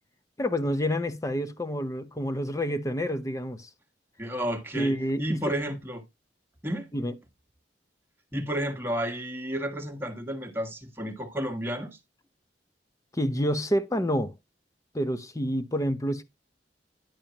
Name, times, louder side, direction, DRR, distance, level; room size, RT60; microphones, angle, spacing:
voice 1, 0.4-3.7 4.7-5.4 6.9-7.1 13.1-14.3 14.9-16.2, equal, 20° left, 0.8 m, -28 dB
voice 2, 4.2-6.0 6.6-6.9 8.3-12.0, equal, 15° right, 1.4 m, -32 dB
10.5 x 6.9 x 2.9 m
head